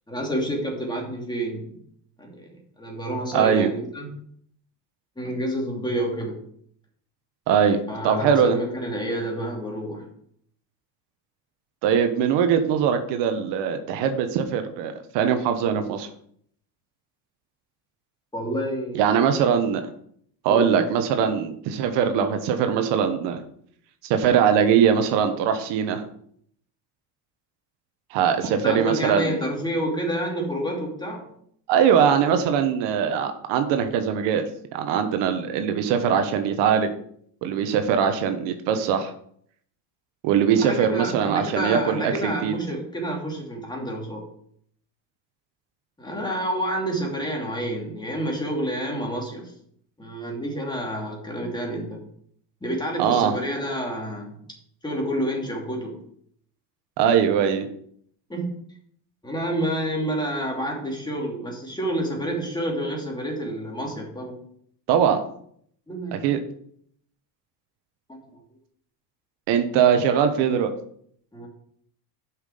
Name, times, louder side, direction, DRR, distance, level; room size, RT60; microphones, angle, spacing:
voice 1, 0.1-1.8 2.2-4.1 5.2-6.4 7.9-10.1 18.3-19.0 20.5-20.7 28.4-31.3 40.6-44.3 46.0-49.5 50.0-52.0 52.6-54.3 54.8-56.0 58.3-58.5 59.2-64.3 65.9-66.2 68.3-68.4 71.3-71.5, right 1 dB, 10° left, -1 dB, 2.8 m, -29 dB
voice 2, 3.3-3.7 7.5-8.6 11.8-16.1 18.9-19.8 20.4-23.4 24.1-26.0 28.1-29.4 31.7-34.4 34.7-36.9 37.4-39.1 40.2-42.5 53.0-53.3 57.0-57.7 64.9-65.2 66.1-66.4 69.5-70.7, right 7 dB, 75° right, 7 dB, 1.2 m, -21 dB
8.0 x 5.9 x 5.1 m, 0.65 s
cardioid pair, 115°, 42 cm